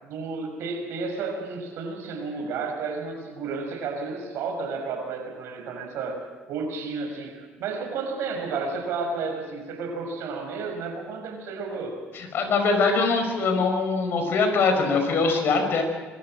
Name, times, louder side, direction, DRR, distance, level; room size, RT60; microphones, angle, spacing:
voice 1, 0.0-11.9, right 4 dB, 70° right, 4 dB, 5.6 m, -32 dB
voice 2, 12.1-15.8, left 4 dB, 55° left, 5 dB, 5.6 m, -22 dB
24.5 x 13.0 x 8.8 m, 1.3 s
supercardioid pair, 90°, 4 cm